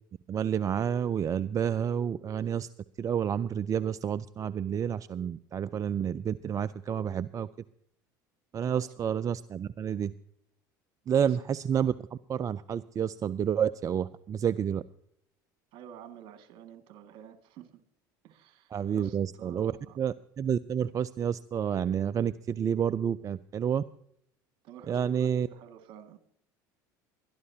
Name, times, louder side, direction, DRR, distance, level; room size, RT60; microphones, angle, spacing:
voice 1, 0.3-2.7 3.0-7.5 8.5-10.1 11.1-14.8 18.7-23.8 24.9-25.5, right 8 dB, 35° right, 15 dB, 0.4 m, -29 dB
voice 2, 8.6-8.9 11.2-11.4 15.7-17.8 18.2-20.0 24.6-26.2, right 9 dB, 55° right, 7 dB, 2.1 m, -50 dB
21.5 x 12.5 x 2.8 m, 0.72 s
hypercardioid pair, 80°, 10 cm